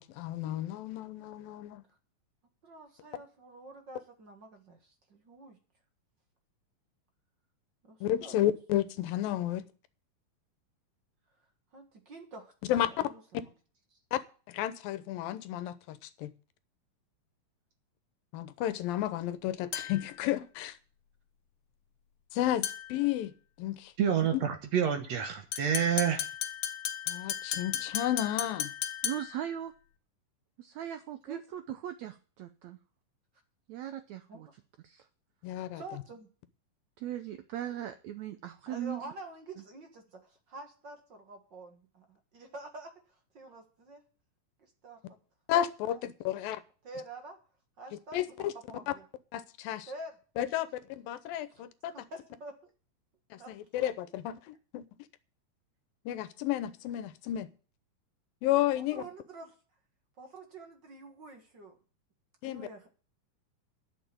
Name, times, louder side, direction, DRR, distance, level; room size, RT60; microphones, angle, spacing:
voice 1, 0.0-1.8 8.0-9.6 12.7-13.1 14.1-14.2 14.5-16.3 18.3-20.8 22.3-23.3 23.6-23.9 24.3-24.5 27.1-28.7 35.4-35.8 45.5-46.6 48.1-48.5 49.3-49.9 50.4-51.9 53.3-54.8 56.1-57.5 58.4-59.0 62.4-62.7, left 12 dB, 80° left, 13 dB, 2.6 m, -32 dB
voice 2, 2.6-5.6 7.8-8.4 11.7-13.5 13.9-14.0 31.3-31.4 34.3-34.5 35.7-36.3 38.7-44.0 44.6-45.2 45.9-47.4 47.8-49.1 49.9-50.2 50.6-50.7 51.5-52.7 53.4-53.5 58.7-59.5 60.2-61.8 62.4-62.9, right 2 dB, 40° right, 4 dB, 1.7 m, -48 dB
sound 1, 19.7-20.2 22.6-23.0 25.5-29.5, left 11 dB, 65° left, 2.1 m, -35 dB
voice 3, 24.0-26.2, right 8 dB, 60° right, 7 dB, 1.9 m, -28 dB
voice 4, 29.0-29.7 30.6-32.8 33.7-34.5 34.8-35.1 37.0-39.1, right 11 dB, 85° right, 10 dB, 1.6 m, -39 dB
10.5 x 6.9 x 8.9 m, 0.38 s
omnidirectional pair, 4.1 m